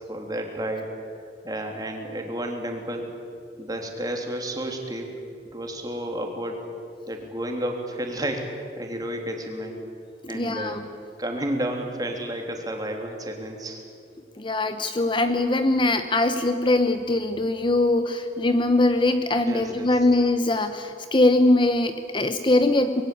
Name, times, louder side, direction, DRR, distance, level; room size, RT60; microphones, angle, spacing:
voice 1, 0.1-0.9 1.4-3.1 3.6-5.2 5.5-6.7 7.1-9.8 10.3-10.9 11.2-13.8 19.4-20.1, right 1 dB, 20° right, 2 dB, 3.3 m, -31 dB
voice 2, 10.3-10.8 14.4-23.0, left 2 dB, 30° left, 9 dB, 0.9 m, -22 dB
25.5 x 21.5 x 8.7 m, 2.4 s
head